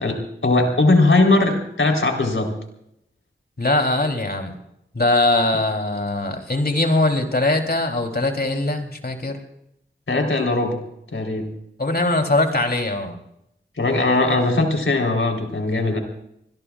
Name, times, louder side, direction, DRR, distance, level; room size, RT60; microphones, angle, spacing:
voice 1, 0.0-2.5 10.1-10.8 11.1-11.5 13.8-16.0, left 2 dB, 80° left, 2 dB, 3.8 m, -19 dB
voice 2, 3.6-4.5 4.9-9.4 11.8-13.2, left 2 dB, 50° left, 4 dB, 3.3 m, -21 dB
26.0 x 21.0 x 2.4 m, 0.79 s
wide cardioid pair, 50°, 20 cm